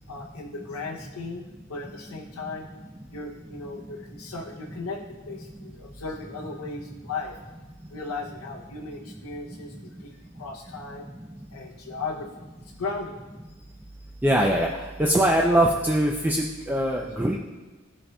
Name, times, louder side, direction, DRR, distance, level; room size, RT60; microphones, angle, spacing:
voice 1, 0.1-2.7 3.1-7.3 7.9-11.1 11.5-12.3 12.6-13.2, left 3 dB, 85° left, -1 dB, 0.6 m, -36 dB
voice 2, 14.2-14.7 15.0-17.4, right 1 dB, 10° right, -1 dB, 0.3 m, -22 dB
12.5 x 4.2 x 2.2 m, 1.2 s
head